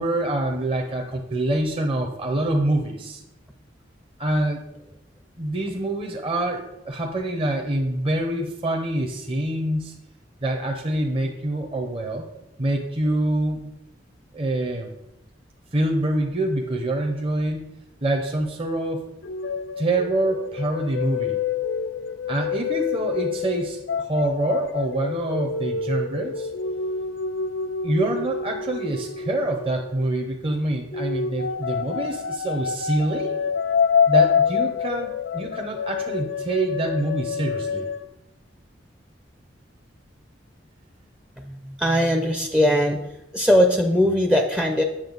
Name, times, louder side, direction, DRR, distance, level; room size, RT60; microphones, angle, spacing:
voice 1, 0.0-3.2 4.2-4.6 5.4-9.9 10.4-12.3 12.6-13.7 14.3-14.9 15.7-17.7 18.0-19.1 19.8-21.4 22.3-26.5 27.8-33.4 34.1-37.9, right 1 dB, 30° right, 2 dB, 0.8 m, -26 dB
sound 1, 19.2-30.3 30.9-38.1, left 6 dB, 75° left, 0.4 m, -27 dB
voice 2, 41.4-44.8, equal, 5° right, 2 dB, 0.5 m, -20 dB
8.8 x 6.8 x 4.0 m, 0.87 s
head